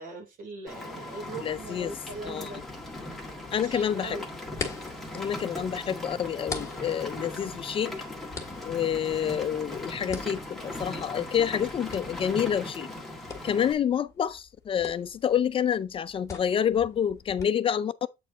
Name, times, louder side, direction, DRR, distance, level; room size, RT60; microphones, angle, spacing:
voice 1, 0.0-2.6 3.6-4.3, right 3 dB, 65° right, 3.3 m, -40 dB
Rain, 0.7-13.7, left 1 dB, ahead, 1.6 m, -39 dB
voice 2, 1.4-1.9 2.2-2.5 3.5-4.2 5.1-7.9 8.6-12.9 13.4-18.1, left 8 dB, 35° left, 0.4 m, -28 dB
sound 1, 1.9-17.4, left 4 dB, 20° left, 1.9 m, -44 dB
8.3 x 4.5 x 3.8 m
cardioid pair, 165°, 15 cm